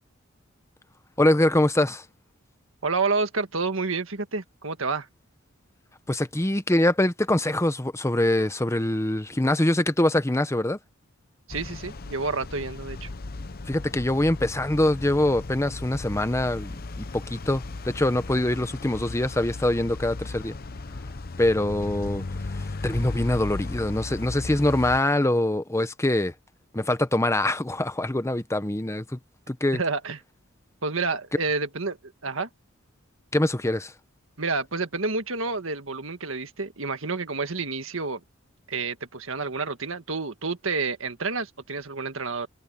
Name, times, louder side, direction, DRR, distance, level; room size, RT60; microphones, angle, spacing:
voice 1, 1.2-2.0 6.1-10.8 13.7-20.6 21.4-22.2 22.8-26.3 26.7-29.2 29.5-29.8 33.3-33.9, left 1 dB, 15° left, 1.0 m, -24 dB
voice 2, 2.8-5.1 11.5-13.1 29.7-30.2 30.8-32.5 34.4-38.2 38.7-42.5, right 4 dB, 70° right, 1.8 m, -29 dB
sound 1, 11.5-25.0, left 3 dB, 45° left, 0.8 m, -36 dB
head